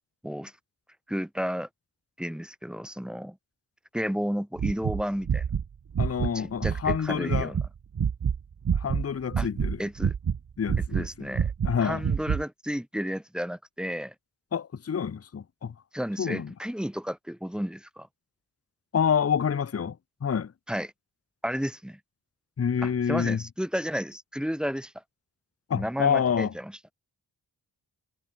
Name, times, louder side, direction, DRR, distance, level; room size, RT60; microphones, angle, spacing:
voice 1, 1.1-1.7 2.2-3.4 3.9-5.4 6.2-7.6 9.4-9.5 9.8-10.1 10.9-11.5 11.8-14.1 15.9-18.1 20.7-20.9 21.4-22.0 22.8-24.9 25.7-26.7, equal, ahead, 0.8 m, -32 dB
sound 1, 4.6-7.0 7.3-7.7 8.0-9.1 9.3-10.4 10.7-12.4, right 7 dB, 50° right, 1.1 m, -27 dB
voice 2, 6.0-7.5 8.7-9.8 10.6-11.3 11.6-12.0 14.5-15.7 16.2-16.5 18.9-20.5 22.6-23.4 25.7-26.5, left 7 dB, 40° left, 0.7 m, -27 dB
wide cardioid pair, 85°, 40 cm